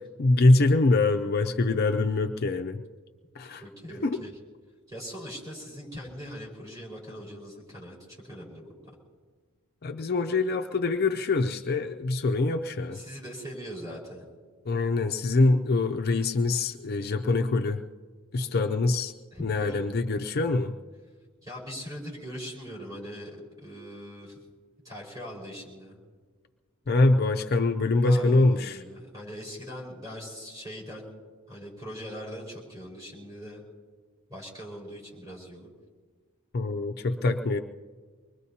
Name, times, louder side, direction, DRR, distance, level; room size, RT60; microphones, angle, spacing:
voice 1, 0.2-2.8 3.4-3.6 4.0-4.2 9.8-13.0 14.7-17.8 18.3-19.1 19.4-20.7 26.9-28.8 36.5-37.6, left 2 dB, 45° left, 5 dB, 0.5 m, -24 dB
voice 2, 3.6-4.3 4.9-8.0 8.2-8.9 12.9-14.3 18.5-18.6 19.3-19.8 21.4-24.4 24.8-26.0 28.0-31.0 31.5-33.6 34.3-35.7, equal, 15° right, -5 dB, 4.7 m, -41 dB
24.5 x 21.0 x 2.8 m, 1.5 s
head